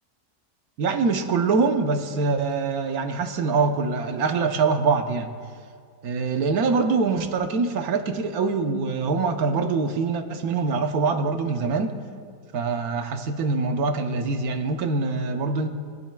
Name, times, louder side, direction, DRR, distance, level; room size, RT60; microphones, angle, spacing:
voice 1, 0.8-5.3 6.0-11.9 12.5-15.7, right 4 dB, 70° right, 6 dB, 1.3 m, -24 dB
22.0 x 11.5 x 2.3 m, 2.2 s
omnidirectional pair, 1.7 m